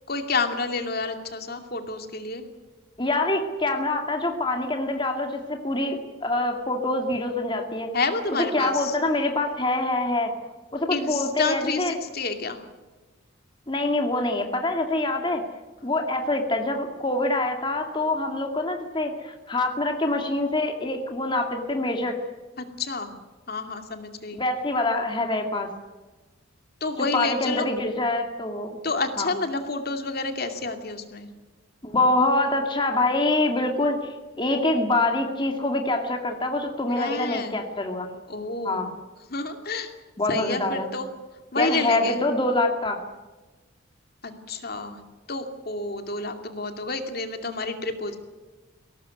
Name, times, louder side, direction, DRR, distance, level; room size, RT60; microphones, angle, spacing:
voice 1, 0.1-2.4 7.9-9.0 10.9-12.6 22.6-23.2 23.5-24.4 26.8-27.7 28.8-31.3 37.0-37.6 38.3-38.9 39.3-39.9 40.3-41.1 41.5-42.2 44.2-45.0 45.3-48.2, left 3 dB, 50° left, 6 dB, 2.5 m, -29 dB
voice 2, 3.0-7.9 8.5-10.3 10.7-12.0 13.7-15.4 15.8-22.2 24.3-25.7 27.1-28.8 29.2-29.3 31.8-38.1 38.6-38.9 40.2-40.9 41.6-43.0, left 2 dB, 25° left, 3 dB, 2.2 m, -25 dB
21.5 x 18.0 x 9.7 m, 1.2 s
head